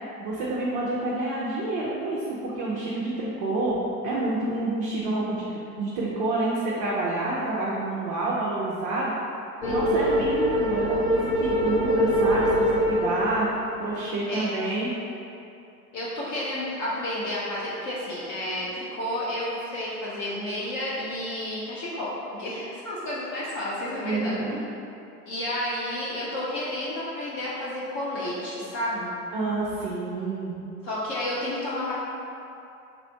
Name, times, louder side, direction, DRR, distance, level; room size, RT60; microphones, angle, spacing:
voice 1, 0.2-3.8 4.0-9.1 9.7-13.5 13.8-14.9 24.0-24.6 29.3-30.5, right 2 dB, 30° right, -6 dB, 0.5 m, -28 dB
sound 1, 9.6-14.0, equal, 75° left, 1.1 m, -24 dB
voice 2, 9.6-10.3 14.3-14.7 15.9-24.4 25.3-29.1 30.8-31.9, left 1 dB, 30° left, -7 dB, 0.6 m, -31 dB
3.4 x 2.5 x 4.4 m, 2.7 s
figure-of-eight pair, 90°, 48 cm